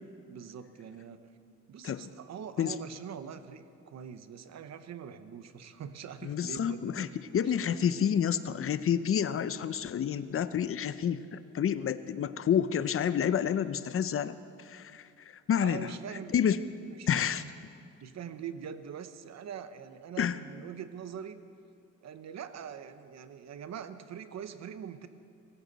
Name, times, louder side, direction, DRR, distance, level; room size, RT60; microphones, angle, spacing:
voice 1, 0.3-1.2 1.7-7.4 15.6-16.4 16.9-17.5 18.0-21.4 22.0-25.1, right 8 dB, 60° right, 11 dB, 1.0 m, -43 dB
voice 2, 6.2-7.1 7.3-15.9 16.3-16.6 17.1-17.4 20.2-20.4, left 8 dB, 45° left, 14 dB, 0.6 m, -29 dB
22.5 x 14.0 x 4.1 m, 2.4 s
cardioid pair, 90°, 30 cm